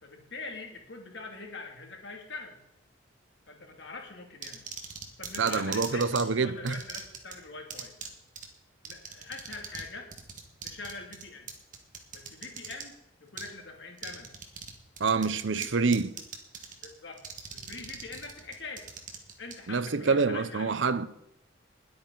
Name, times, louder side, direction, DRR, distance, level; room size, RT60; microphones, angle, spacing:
voice 1, 0.0-2.6 3.5-4.7 5.2-7.9 8.8-10.1 10.6-11.5 12.1-12.9 13.2-14.3 15.1-15.7 16.8-17.2 17.5-18.9 19.4-20.8, left 3 dB, 60° left, 2.7 m, -43 dB
sound 1, 4.4-6.2 6.7-7.3 7.7-8.1 8.4-8.5 8.8-9.9 10.1-12.8 13.4-13.5 14.0-14.7 15.0-15.7 15.9-16.9 17.2-19.5, right 7 dB, 40° right, 1.7 m, -40 dB
voice 2, 5.4-6.8 15.0-16.1 19.7-21.1, right 4 dB, 70° right, 0.7 m, -26 dB
20.5 x 8.7 x 4.0 m
head